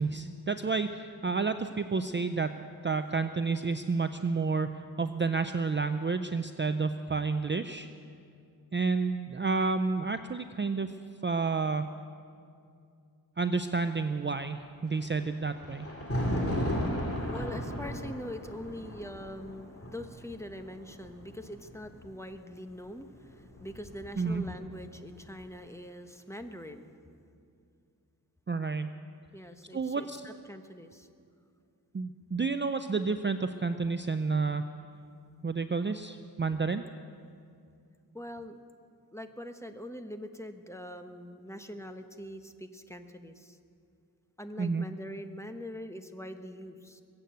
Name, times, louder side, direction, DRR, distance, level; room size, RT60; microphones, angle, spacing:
voice 1, 0.0-2.5 2.8-7.9 8.7-10.9 11.2-11.9 13.4-15.9 24.2-24.4 28.5-28.9 29.7-30.2 31.9-34.6 35.4-36.8 44.6-44.9, right 4 dB, 30° right, 9 dB, 0.5 m, -30 dB
Thunder, 14.9-22.1 23.1-24.9, equal, 35° left, 2.8 m, -35 dB
voice 2, 17.1-27.0 29.3-31.1 38.1-38.6 39.1-43.6 44.4-47.0, equal, 5° left, 7 dB, 0.9 m, -43 dB
22.0 x 8.4 x 7.9 m, 2.4 s
wide cardioid pair, 85°, 38 cm